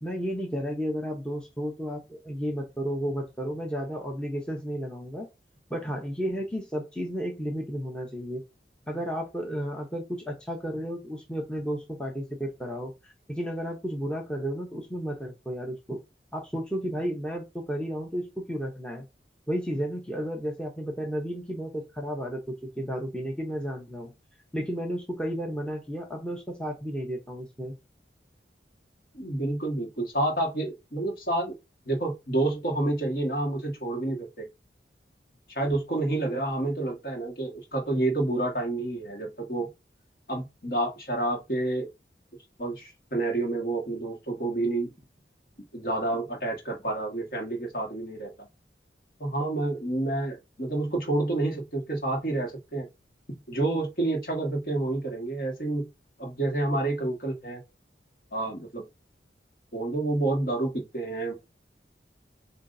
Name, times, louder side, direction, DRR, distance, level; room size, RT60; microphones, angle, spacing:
voice 1, 0.0-5.3 5.7-8.4 8.9-16.0 16.3-19.0 19.5-24.1 24.5-27.7, equal, 5° left, 0.8 m, -33 dB
voice 2, 29.1-31.6 31.9-34.5 35.6-39.7 40.3-41.9 42.6-44.9 45.7-48.5 49.2-52.9 53.5-55.9 56.2-57.6 58.3-58.8 59.7-61.3, right 2 dB, 55° left, 1.7 m, -29 dB
7.1 x 2.7 x 2.7 m
head